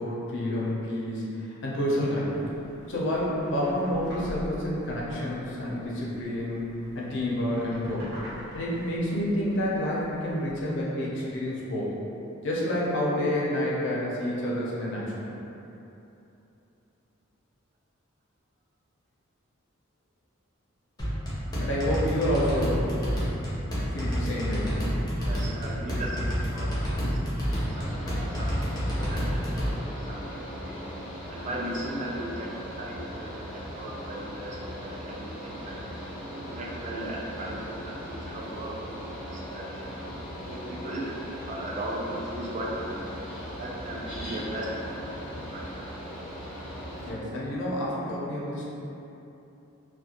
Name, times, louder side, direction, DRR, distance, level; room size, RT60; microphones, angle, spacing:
voice 1, 0.0-2.4 2.9-6.6 6.9-8.1 8.5-12.0 12.4-15.3 21.6-23.3 23.9-24.8 27.0-27.3 47.0-48.6, left 1 dB, 65° left, -5 dB, 0.5 m, -29 dB
sound 1, 2.2-10.5, equal, 50° right, 0.8 m, -45 dB
sound 2, 21.0-29.7, equal, 20° left, 0.6 m, -29 dB
voice 2, 25.2-30.8 31.3-35.8 36.3-39.9 40.5-43.1 43.6-45.0 45.3-46.1, right 1 dB, 35° right, -4 dB, 0.4 m, -38 dB
Mechanical fan, 27.5-47.1, equal, ahead, 1.1 m, -39 dB
2.4 x 2.1 x 2.8 m, 2.9 s
head